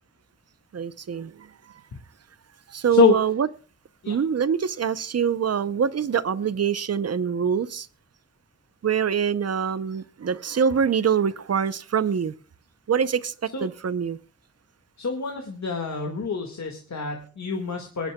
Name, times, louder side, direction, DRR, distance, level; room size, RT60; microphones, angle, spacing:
voice 1, 0.7-1.5 2.7-3.5 4.1-7.9 8.8-12.3 12.9-14.2, right 7 dB, 55° right, 0.7 m, -24 dB
voice 2, 15.0-18.1, left 5 dB, 70° left, 1.8 m, -25 dB
24.5 x 11.0 x 2.2 m
wide cardioid pair, 120°, 30 cm